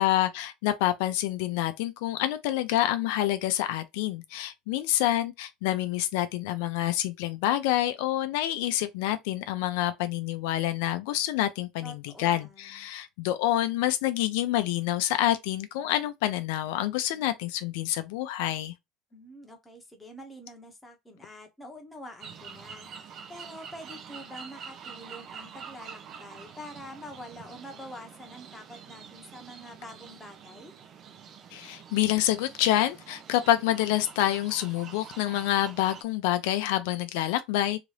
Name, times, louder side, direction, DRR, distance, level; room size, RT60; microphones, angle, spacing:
voice 1, 0.0-18.7 31.5-37.8, left 13 dB, 75° left, 0.5 m, -27 dB
voice 2, 11.8-12.9 19.1-30.7, equal, 5° left, 0.8 m, -46 dB
sound 1, 22.2-36.0, right 7 dB, 35° right, 0.6 m, -46 dB
2.8 x 2.6 x 3.2 m
cardioid pair, 165°, 0 cm